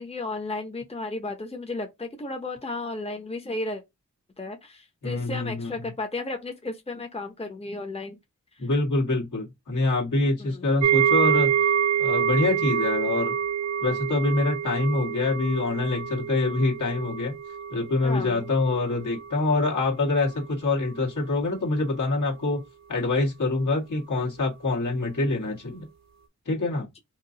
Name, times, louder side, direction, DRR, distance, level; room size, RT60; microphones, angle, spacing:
voice 1, 0.0-3.8 4.4-8.2 10.4-10.7 18.0-18.5, left 2 dB, 20° left, 0.8 m, -34 dB
voice 2, 5.0-5.9 8.6-11.5 12.0-13.3 13.8-17.3 17.7-22.6 22.9-25.9 26.4-26.9, left 2 dB, 70° left, 1.6 m, -25 dB
sound 1, 10.8-19.9 20.2-20.5 20.9-21.0, right 9 dB, 60° right, 0.7 m, -27 dB
2.9 x 2.6 x 3.8 m
cardioid pair, 55°, 31 cm